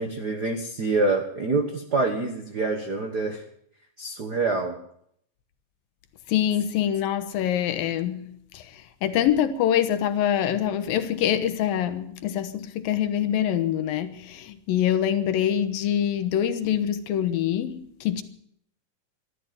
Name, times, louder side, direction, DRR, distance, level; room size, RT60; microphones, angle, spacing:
voice 1, 0.0-3.4 4.0-4.8, right 3 dB, 65° right, 0.9 m, -26 dB
voice 2, 6.3-18.2, left 10 dB, 85° left, 2.9 m, -25 dB
13.5 x 13.0 x 7.6 m
omnidirectional pair, 4.0 m